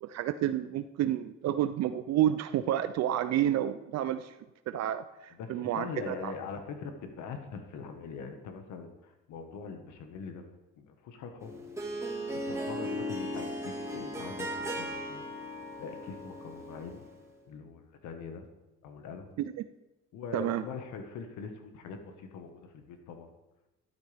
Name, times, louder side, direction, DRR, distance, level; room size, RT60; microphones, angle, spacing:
voice 1, 0.0-4.3 4.7-6.3 19.4-19.5 20.3-20.6, right 11 dB, 60° right, 10 dB, 0.5 m, -30 dB
voice 2, 5.3-11.6 12.4-15.3 15.8-17.0 17.5-18.5 18.8-19.3 20.1-23.3, left 5 dB, 75° left, 5 dB, 1.5 m, -42 dB
Harp, 11.4-17.2, equal, 10° right, 1.8 m, -37 dB
12.5 x 12.0 x 3.5 m, 0.99 s
cardioid pair, 115°, 30 cm